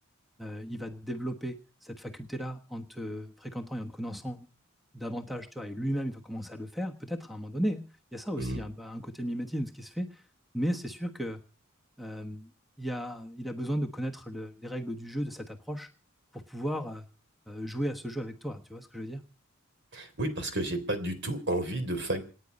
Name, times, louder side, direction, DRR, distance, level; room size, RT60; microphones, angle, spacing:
voice 1, 0.4-4.5 4.9-7.8 8.1-10.2 10.5-11.4 12.0-12.5 12.8-15.9 16.3-17.1 17.5-19.2, equal, ahead, 6 dB, 1.2 m, -35 dB
voice 2, 19.9-22.2, right 1 dB, 60° right, 9 dB, 3.5 m, -31 dB
27.5 x 9.7 x 5.3 m, 0.38 s
head